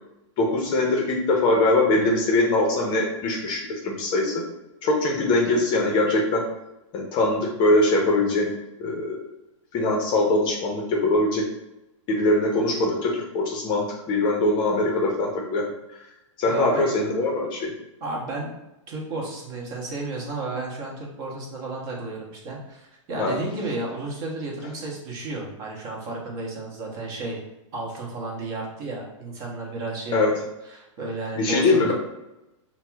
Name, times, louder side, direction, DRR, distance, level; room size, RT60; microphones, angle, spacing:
voice 1, 0.4-4.4 4.8-6.4 6.9-8.5 8.8-9.2 9.7-11.4 12.1-15.7 16.4-17.7 23.1-23.3 30.1-30.3 31.4-31.9, left 2 dB, 30° left, 0 dB, 0.6 m, -22 dB
voice 2, 16.5-16.8 18.0-18.5 18.9-27.4 27.7-31.9, right 2 dB, 40° right, -2 dB, 0.9 m, -33 dB
4.1 x 2.0 x 2.3 m, 0.92 s
hypercardioid pair, 140°, 17 cm